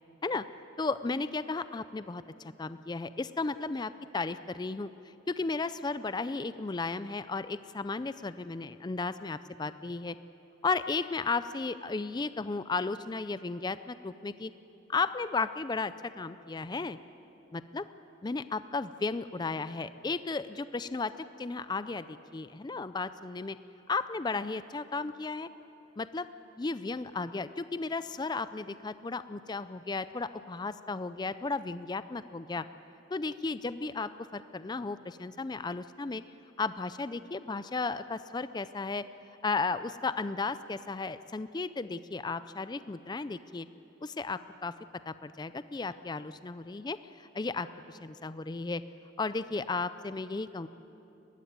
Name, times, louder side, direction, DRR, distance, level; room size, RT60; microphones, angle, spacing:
voice 1, 0.8-4.9 5.3-10.2 10.6-14.5 14.9-17.0 17.5-17.8 18.2-21.1 21.4-23.6 23.9-25.5 26.0-26.3 26.6-32.7 33.1-36.2 36.6-39.0 39.4-43.7 44.0-44.7 45.1-48.8 49.2-50.7, left 3 dB, 20° left, 13 dB, 0.4 m, -34 dB
21.0 x 16.0 x 9.5 m, 3.0 s
head